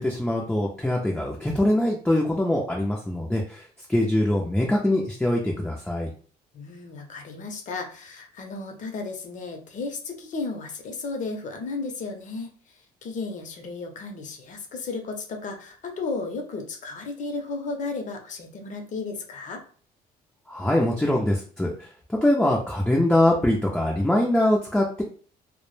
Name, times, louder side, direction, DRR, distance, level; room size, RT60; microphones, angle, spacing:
voice 1, 0.0-3.6 3.9-6.1 20.5-25.0, left 1 dB, 5° left, -2 dB, 0.4 m, -23 dB
voice 2, 6.5-12.5 13.0-19.6, left 3 dB, 50° left, 4 dB, 0.6 m, -34 dB
2.1 x 2.0 x 3.1 m, 0.43 s
cardioid pair, 110°, 17 cm